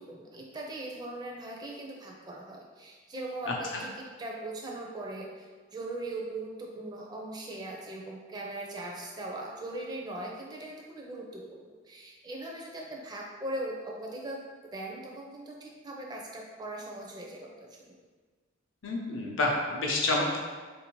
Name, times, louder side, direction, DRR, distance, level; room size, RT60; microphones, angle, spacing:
voice 1, 0.0-14.4 14.7-17.8, right 1 dB, 20° right, -1 dB, 0.4 m, -40 dB
voice 2, 18.8-20.4, left 2 dB, 65° left, -1 dB, 0.6 m, -28 dB
3.7 x 2.6 x 3.0 m, 1.4 s
head